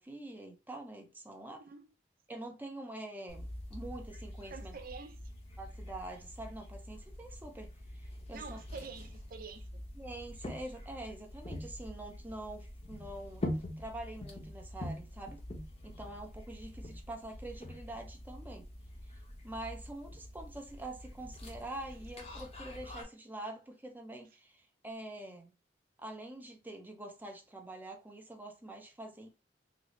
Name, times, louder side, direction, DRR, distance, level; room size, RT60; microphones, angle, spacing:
voice 1, 0.0-1.7 2.3-4.8 5.6-8.6 10.0-15.4 15.8-18.7 19.1-25.5 26.0-29.3, right 1 dB, 10° right, 0.6 m, -45 dB
sound 1, 3.3-23.0, left 1 dB, 35° left, 0.8 m, -45 dB
voice 2, 4.5-5.2 8.3-9.7, right 5 dB, 50° right, 0.5 m, -47 dB
3.9 x 2.0 x 3.1 m
head